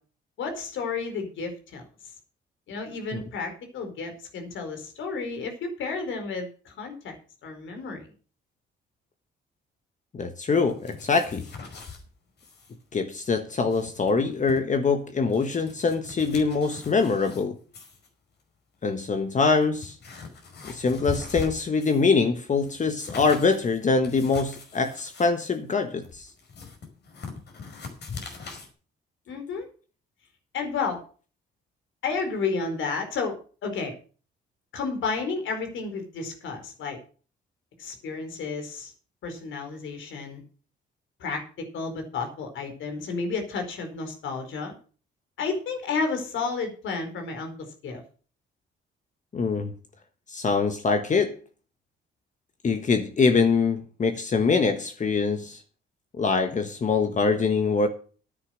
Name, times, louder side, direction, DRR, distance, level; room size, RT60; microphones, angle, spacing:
voice 1, 0.4-1.8 2.7-7.2 7.4-8.1 29.3-29.7 30.5-31.0 32.0-33.9 34.7-37.0 37.8-38.9 39.2-40.4 41.2-41.4 41.7-44.7 45.4-47.5 47.8-48.0, left 4 dB, 75° left, 4.4 m, -31 dB
voice 2, 10.1-11.5 12.9-17.6 18.8-20.0 20.6-26.3 49.3-49.7 50.3-51.3 52.6-55.6 56.1-57.9, left 4 dB, 40° left, 1.4 m, -24 dB
sound 1, 10.5-12.0 12.4-12.7 13.0-13.1 13.5-14.6 15.1-17.4 17.7-18.1 18.8-18.9 19.4-22.1 22.5-28.7, left 5 dB, 60° left, 5.3 m, -41 dB
10.0 x 9.7 x 6.4 m
cardioid pair, 90°, 20 cm